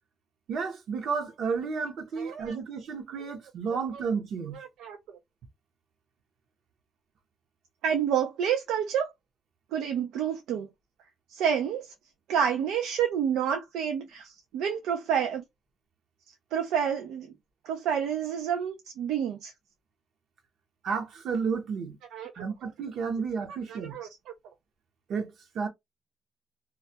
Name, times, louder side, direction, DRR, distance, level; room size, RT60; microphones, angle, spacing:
voice 1, 0.5-4.6 20.8-22.0 22.4-24.0 25.1-25.7, right 5 dB, 70° right, 0.7 m, -32 dB
voice 2, 2.2-2.5 3.9-4.0 4.5-5.0 7.8-9.1 9.7-10.7 11.3-11.9 12.3-15.4 16.5-17.3 17.7-19.5 22.1-22.3 23.7-24.1, right 8 dB, 90° right, 0.4 m, -29 dB
2.3 x 2.1 x 2.6 m
cardioid pair, 90°, 0 cm